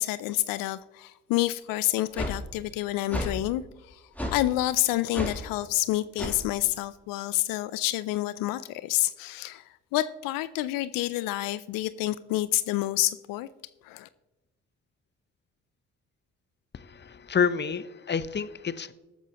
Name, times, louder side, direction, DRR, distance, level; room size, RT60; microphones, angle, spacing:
voice 1, 0.0-4.0 4.3-9.6 9.9-13.5 13.8-14.1, left 16 dB, 80° left, 15 dB, 0.5 m, -28 dB
sound 1, 2.1-2.4 3.1-3.3 4.2-4.4 5.1-5.4 6.2-6.4, left 1 dB, 5° left, 3.3 m, -31 dB
voice 2, 16.7-18.9, left 6 dB, 30° left, 15 dB, 0.8 m, -29 dB
18.0 x 8.1 x 3.0 m, 1.1 s
hypercardioid pair, 50°, 33 cm